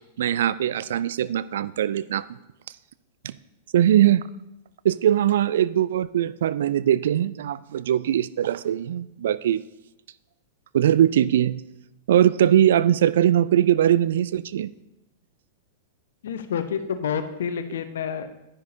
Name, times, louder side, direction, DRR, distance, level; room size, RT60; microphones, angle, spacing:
voice 1, 0.2-2.2 3.2-3.3 3.7-4.3 4.8-9.6 10.7-11.6 12.1-14.7, right 11 dB, 65° right, 17 dB, 0.3 m, -21 dB
voice 2, 16.2-18.3, left 7 dB, 65° left, 9 dB, 0.8 m, -29 dB
10.5 x 10.0 x 2.8 m, 0.93 s
figure-of-eight pair, 100°, 0 cm